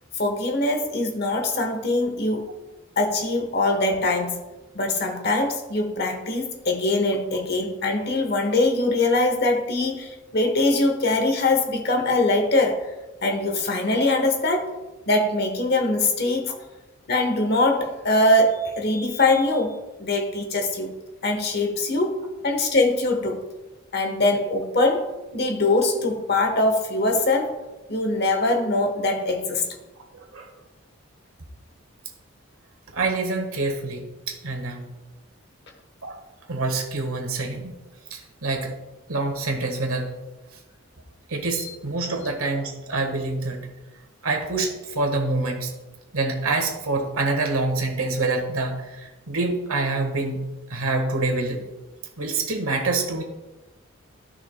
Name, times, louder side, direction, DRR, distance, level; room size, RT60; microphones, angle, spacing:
voice 1, 0.1-2.5 3.0-4.4 4.7-12.8 13.2-14.7 15.1-16.5 17.1-20.9 21.2-22.2 22.4-23.4 23.9-27.6 27.9-29.7, left 2 dB, 50° left, 4 dB, 1.1 m, -22 dB
voice 2, 30.1-30.5 32.9-34.9 36.0-36.2 36.5-37.7 38.1-38.7 39.1-40.2 41.3-43.7 44.2-45.7 46.1-50.4 50.7-51.6 52.2-53.2, right 3 dB, 90° right, 3 dB, 1.5 m, -26 dB
13.5 x 5.9 x 2.2 m, 1.1 s
head